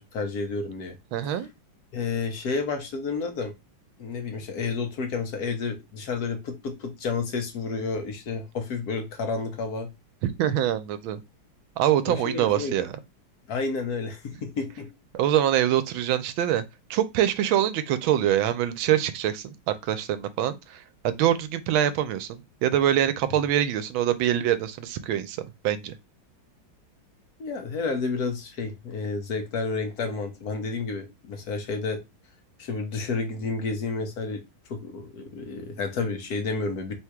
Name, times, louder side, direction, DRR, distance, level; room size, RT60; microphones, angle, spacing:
voice 1, 0.0-1.0 1.2-1.4 1.9-3.5 4.0-9.9 12.0-12.9 13.5-14.9 27.4-32.0 32.6-34.4 34.7-36.9, left 4 dB, 55° left, 1.3 m, -30 dB
voice 2, 1.1-1.5 10.4-11.2 11.8-12.9 15.1-16.6 16.9-20.6 21.0-25.9, right 11 dB, 85° right, 1.4 m, -24 dB
3.7 x 2.8 x 4.5 m
omnidirectional pair, 2.2 m